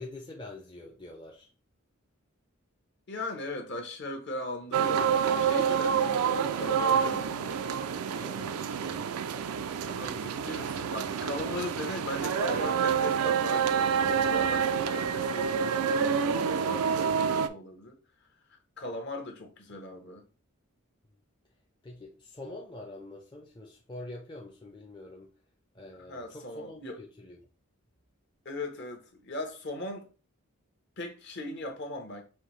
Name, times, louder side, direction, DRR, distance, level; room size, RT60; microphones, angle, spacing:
voice 1, 0.0-1.5 8.1-9.3 21.8-25.3 25.7-27.4, left 2 dB, 20° left, 0.5 m, -45 dB
voice 2, 3.1-7.6 9.9-18.0 18.5-20.2 26.1-27.0 28.4-30.1 31.0-32.2, left 1 dB, 50° left, 0.9 m, -38 dB
sound 1, 4.7-17.5, right 7 dB, 80° right, 0.4 m, -28 dB
5.6 x 2.8 x 3.1 m
head